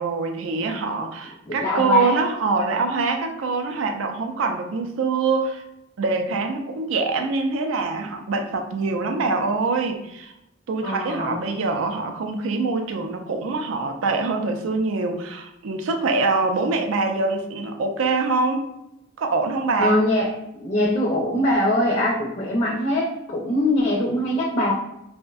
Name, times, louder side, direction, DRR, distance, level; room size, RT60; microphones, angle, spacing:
voice 1, 0.0-5.6 6.0-10.3 10.7-18.7 19.2-20.0, right 3 dB, 75° right, 4 dB, 0.4 m, -24 dB
voice 2, 1.4-2.2 10.8-11.4 19.8-24.7, left 1 dB, 40° left, -4 dB, 0.4 m, -22 dB
2.5 x 2.1 x 2.3 m, 0.84 s
head